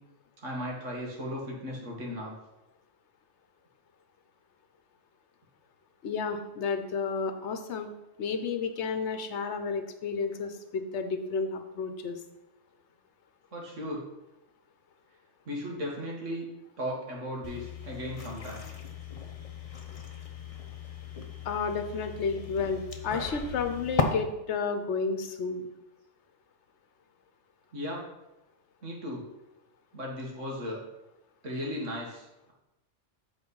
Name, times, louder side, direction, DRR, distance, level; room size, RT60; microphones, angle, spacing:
voice 1, 0.4-2.3 13.5-14.0 15.5-16.5 16.8-18.7 27.7-28.1 28.8-29.2 29.9-30.8 31.4-32.5, equal, 80° right, -1 dB, 2.1 m, -36 dB
voice 2, 6.0-7.9 8.2-12.2 21.4-25.7, left 5 dB, 70° left, 8 dB, 1.1 m, -31 dB
sound 1, 17.4-24.0, left 5 dB, 35° left, 0.6 m, -37 dB
8.2 x 4.3 x 5.5 m, 0.94 s
omnidirectional pair, 1.3 m